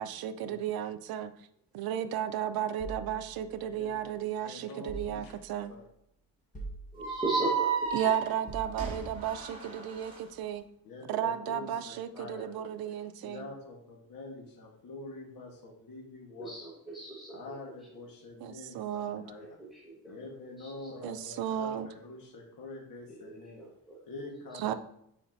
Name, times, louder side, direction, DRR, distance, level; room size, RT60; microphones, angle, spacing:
voice 1, 0.0-1.3 1.7-5.7 7.9-10.6 11.1-13.5 18.4-19.2 21.0-21.9 24.6-24.7, right 10 dB, 80° right, 11 dB, 0.6 m, -34 dB
sound 1, 2.8-4.2 4.9-5.7 6.5-7.4 8.5-9.3, right 3 dB, 20° left, 1.4 m, -45 dB
voice 2, 3.6-3.9 4.4-5.3 5.7-5.8 10.8-12.5 13.2-16.7 17.3-19.6 20.0-23.6 24.1-24.7, left 2 dB, 70° left, -1 dB, 1.5 m, -46 dB
voice 3, 7.0-7.7 16.4-17.4 19.4-19.5 20.0-20.1 23.2-23.4 23.9-24.0, right 2 dB, ahead, -5 dB, 1.3 m, -35 dB
sound 2, 7.0-10.2, right 5 dB, 25° right, 2.5 m, -33 dB
8.8 x 4.2 x 2.7 m, 0.75 s
cardioid pair, 105°, 35 cm